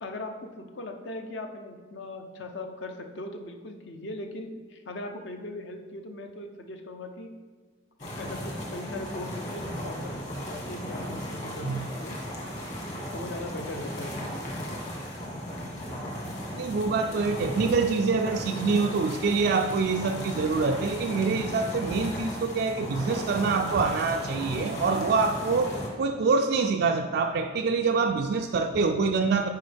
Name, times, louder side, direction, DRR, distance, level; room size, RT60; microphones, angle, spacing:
voice 1, 0.0-7.3 8.2-12.2 13.1-14.3, left 2 dB, 65° left, 4 dB, 0.7 m, -39 dB
sound 1, 8.0-25.9, equal, 40° left, 1.5 m, -36 dB
voice 2, 16.6-29.5, right 4 dB, 55° right, 5 dB, 0.3 m, -25 dB
9.3 x 4.6 x 3.4 m, 1.5 s
head